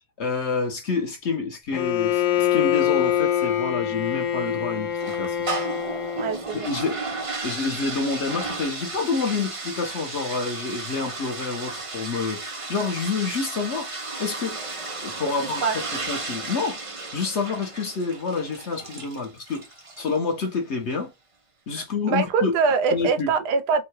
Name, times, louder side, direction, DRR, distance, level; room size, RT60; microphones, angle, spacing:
voice 1, 0.2-5.5 6.5-7.0 7.4-13.9 14.2-14.6 15.0-15.7 16.1-16.8 17.1-19.7 20.0-21.1 21.7-22.5 22.9-23.3, left 4 dB, 50° left, 1.0 m, -28 dB
Bowed string instrument, 1.7-6.5, left 10 dB, 80° left, 1.3 m, -24 dB
sound 1, 5.0-20.2, right 3 dB, 50° right, 0.3 m, -34 dB
voice 2, 6.2-6.7 15.6-15.7 21.7-23.8, right 5 dB, 80° right, 1.3 m, -23 dB
3.7 x 2.2 x 4.4 m
omnidirectional pair, 1.7 m